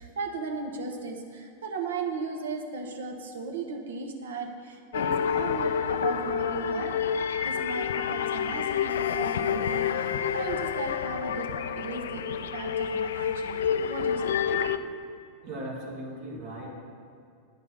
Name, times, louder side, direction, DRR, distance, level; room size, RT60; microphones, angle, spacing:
voice 1, 0.0-7.0 7.4-12.2 12.5-14.7, right 4 dB, 65° right, 2 dB, 1.0 m, -36 dB
sound 1, 4.9-14.8, left 8 dB, 60° left, 0.3 m, -28 dB
voice 2, 15.4-16.7, right 1 dB, 45° right, -2 dB, 1.5 m, -37 dB
9.8 x 4.9 x 6.5 m, 2.3 s
figure-of-eight pair, 90°, 0 cm